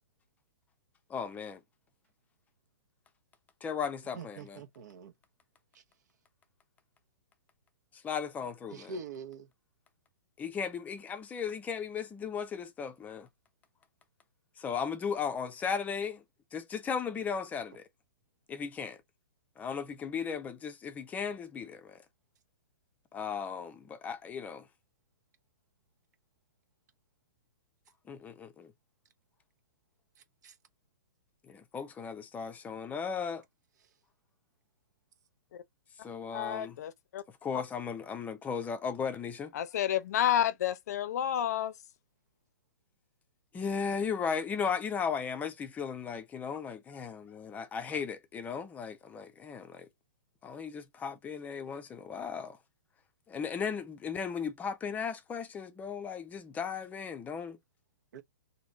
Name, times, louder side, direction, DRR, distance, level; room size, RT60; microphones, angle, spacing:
voice 1, 1.1-1.6 3.6-4.6 8.0-8.9 10.4-13.3 14.6-16.2 16.5-17.8 18.5-19.0 19.6-22.0 23.1-24.7 28.1-28.7 31.5-33.4 36.0-36.8 37.4-39.5 43.5-49.9 50.4-52.6 53.3-57.6, left 6 dB, 15° left, 0.6 m, -36 dB
voice 2, 4.2-5.1 8.7-9.5 30.4-30.5 58.1-58.2, right 4 dB, 60° right, 0.9 m, -44 dB
voice 3, 36.3-37.2 37.5-37.6 39.5-41.7, left 11 dB, 55° left, 0.6 m, -30 dB
3.0 x 2.8 x 3.6 m
hypercardioid pair, 125°, 10 cm